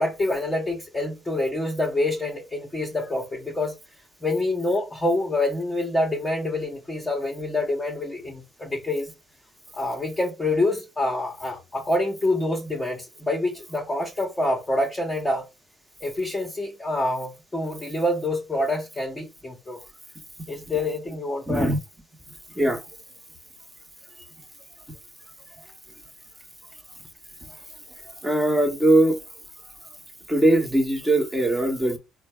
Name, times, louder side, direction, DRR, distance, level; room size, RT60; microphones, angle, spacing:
voice 1, 0.0-3.8 4.2-9.1 9.7-15.5 16.0-19.8 20.5-21.7, left 1 dB, 15° left, 1.2 m, -26 dB
voice 2, 21.5-21.8 22.6-22.8 28.2-29.2 30.3-32.0, right 1 dB, 5° right, 1.3 m, -20 dB
4.3 x 2.3 x 4.4 m
cardioid pair, 100°, 0 cm